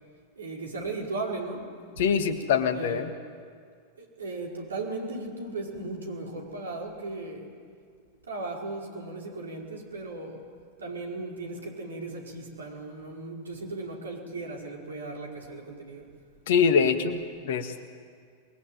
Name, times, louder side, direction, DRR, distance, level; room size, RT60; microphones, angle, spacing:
voice 1, 0.3-1.7 2.7-3.1 4.0-7.5 8.3-10.4 10.8-16.1, right 2 dB, 70° right, -1 dB, 5.1 m, -36 dB
voice 2, 2.0-3.1 16.5-17.8, left 6 dB, 55° left, 9 dB, 1.8 m, -24 dB
28.0 x 21.0 x 9.2 m, 2.1 s
figure-of-eight pair, 90°, 0 cm